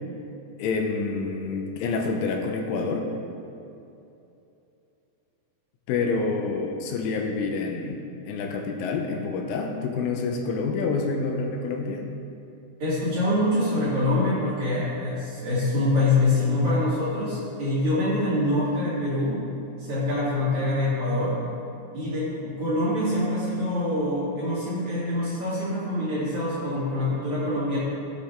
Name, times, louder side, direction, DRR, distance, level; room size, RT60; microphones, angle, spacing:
voice 1, 0.6-3.1 5.9-12.0, left 4 dB, 85° left, 2 dB, 3.3 m, -28 dB
voice 2, 12.8-19.5 19.8-21.5 21.9-27.8, left 1 dB, 45° right, -10 dB, 3.1 m, -25 dB
16.0 x 7.8 x 3.5 m, 2.8 s
omnidirectional pair, 5.8 m